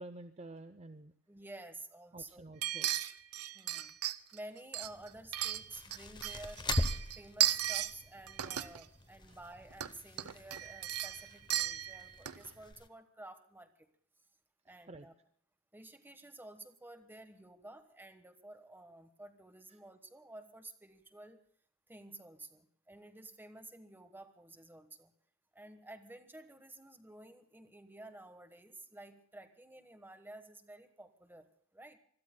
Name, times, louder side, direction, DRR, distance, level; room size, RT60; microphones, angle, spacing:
voice 1, 0.0-1.1 2.1-2.9 9.3-9.4 14.7-15.1 19.7-19.8, right 2 dB, 30° right, 10 dB, 0.6 m, -50 dB
voice 2, 1.3-2.5 3.5-4.0 4.3-6.7 7.2-13.9 14.6-15.1 15.7-21.4 21.9-25.1 25.5-31.5 31.7-32.0, right 2 dB, 10° right, 8 dB, 1.3 m, -52 dB
sound 1, 2.6-4.4 4.7-6.0 6.2-7.9 8.3-8.8 9.7-9.9 10.2-12.5 12.7-12.8, right 12 dB, 85° right, 0.7 m, -35 dB
sound 2, 4.8-12.9, left 2 dB, 20° left, 0.9 m, -42 dB
26.0 x 20.5 x 2.3 m, 0.64 s
head